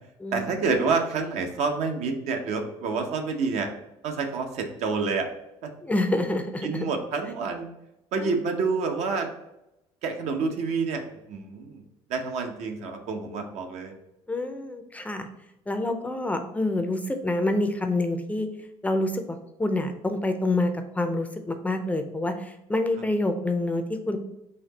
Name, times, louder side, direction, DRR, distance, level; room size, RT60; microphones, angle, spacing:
voice 1, 0.3-3.7 4.0-5.3 5.6-5.7 6.6-7.7 8.1-9.3 10.0-11.8 12.1-13.9, right 4 dB, 65° right, 4 dB, 0.7 m, -28 dB
voice 2, 5.8-6.9 8.2-8.4 14.3-15.3 15.7-18.5 18.8-24.2, left 2 dB, 10° left, 6 dB, 0.4 m, -27 dB
4.2 x 2.8 x 3.9 m, 0.90 s
cardioid pair, 110°, 12 cm